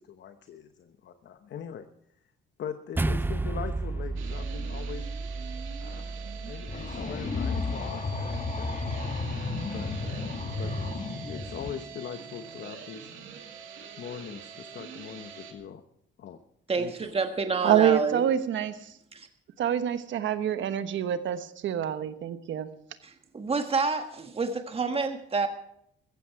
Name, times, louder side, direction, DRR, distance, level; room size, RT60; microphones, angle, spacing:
voice 1, 0.0-1.9 2.6-5.1 5.8-10.7 11.1-13.1 14.0-15.8 16.2-16.4 16.7-17.1, left 8 dB, 60° left, 1.0 m, -42 dB
sound 1, 3.0-7.5, right 3 dB, 10° right, 0.5 m, -33 dB
sound 2, 4.2-15.5, right 7 dB, 90° right, 2.3 m, -44 dB
sound 3, 6.7-11.7, left 3 dB, 40° left, 1.7 m, -32 dB
voice 2, 16.7-18.2 19.1-19.3 23.0-25.5, right 4 dB, 30° right, 1.4 m, -28 dB
voice 3, 17.6-18.9 19.6-22.7, right 10 dB, 70° right, 1.2 m, -26 dB
15.0 x 15.0 x 4.7 m
cardioid pair, 90°, 20 cm